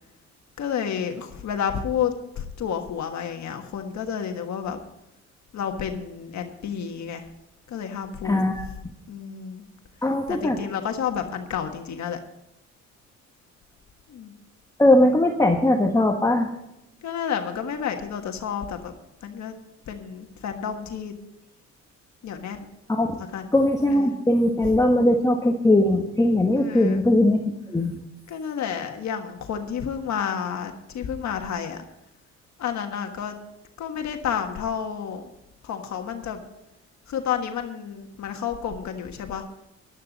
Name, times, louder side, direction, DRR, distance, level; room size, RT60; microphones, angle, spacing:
voice 1, 0.6-4.8 5.5-7.2 7.7-8.4 9.1-9.6 10.3-12.2 14.1-14.3 17.0-18.9 19.2-19.5 19.9-21.1 22.2-22.7 23.3-23.5 23.9-24.1 26.5-27.0 28.3-31.8 32.6-33.3 33.8-35.2 35.6-36.4 37.1-39.4, left 8 dB, 65° left, 5 dB, 1.5 m, -30 dB
voice 2, 8.2-8.7 10.0-10.6 14.8-16.5 22.9-23.1 23.5-28.0, left 1 dB, 10° left, 2 dB, 1.3 m, -20 dB
15.0 x 11.5 x 4.1 m, 0.86 s
cardioid pair, 90°, 30 cm